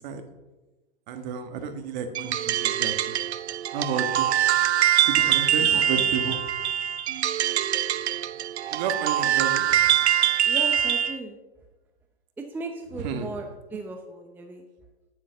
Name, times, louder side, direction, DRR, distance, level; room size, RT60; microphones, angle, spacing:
voice 1, 1.1-2.9 3.7-4.3 5.0-6.4 8.7-9.8 13.0-13.3, right 6 dB, 45° right, 7 dB, 1.7 m, -31 dB
sound 1, 2.1-11.2, right 10 dB, 80° right, 0.7 m, -23 dB
voice 2, 5.1-6.1 10.4-11.4 12.4-14.6, right 3 dB, 5° right, 4 dB, 0.7 m, -37 dB
9.5 x 9.3 x 7.1 m, 1.2 s
hypercardioid pair, 140°, 32 cm